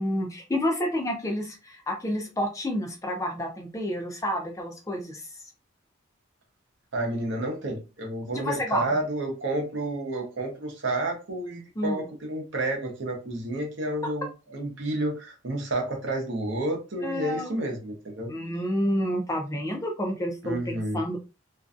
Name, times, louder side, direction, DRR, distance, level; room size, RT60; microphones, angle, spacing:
voice 1, 0.0-5.2 8.3-8.9 11.8-12.0 17.0-17.6 18.3-21.2, equal, 15° left, 2 dB, 0.4 m, -29 dB
voice 2, 6.9-18.3 20.4-21.0, right 1 dB, 60° right, 1 dB, 0.8 m, -30 dB
2.5 x 2.2 x 2.4 m, 0.30 s
head